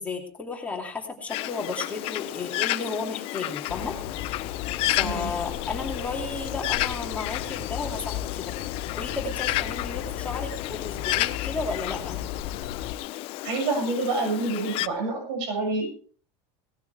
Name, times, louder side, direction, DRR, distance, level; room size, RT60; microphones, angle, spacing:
voice 1, 0.0-4.0 4.9-8.6 9.0-12.2, left 3 dB, 10° left, 0 dB, 2.7 m, -33 dB
Bird, 1.3-14.9, left 17 dB, 40° left, 0.6 m, -32 dB
sound 1, 3.7-12.9, left 10 dB, 65° left, 1.3 m, -35 dB
voice 2, 5.0-5.3 13.4-15.9, right 3 dB, 65° right, 1 dB, 6.9 m, -27 dB
18.0 x 12.5 x 3.4 m, 0.43 s
cardioid pair, 180°, 15 cm